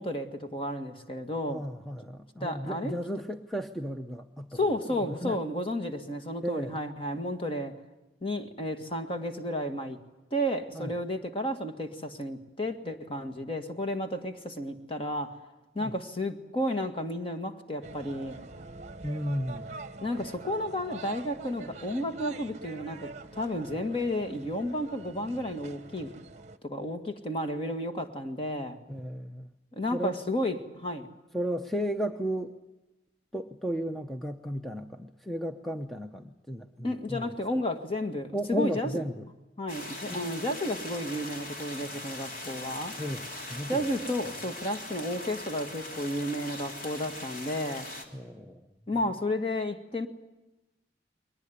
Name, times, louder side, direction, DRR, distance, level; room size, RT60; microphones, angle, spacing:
voice 1, 0.0-1.6 2.4-3.0 4.5-7.7 8.2-10.0 10.3-15.4 15.8-18.4 20.0-26.1 26.6-28.8 29.8-31.1 36.8-39.0 39.6-43.0 43.7-47.9 48.9-50.1, left 1 dB, 30° left, 6 dB, 1.8 m, -32 dB
voice 2, 1.5-5.4 6.4-6.8 10.7-10.9 15.8-16.0 19.0-19.8 28.9-29.5 29.9-30.1 31.3-32.5 33.3-37.3 38.3-39.3 40.1-40.3 43.0-44.0 48.1-48.7, equal, ahead, 5 dB, 0.7 m, -34 dB
sound 1, 17.8-26.6, right 3 dB, 40° right, 1.0 m, -45 dB
sound 2, 39.7-48.0, left 2 dB, 45° left, 3.3 m, -41 dB
22.0 x 19.5 x 9.9 m, 1.1 s
head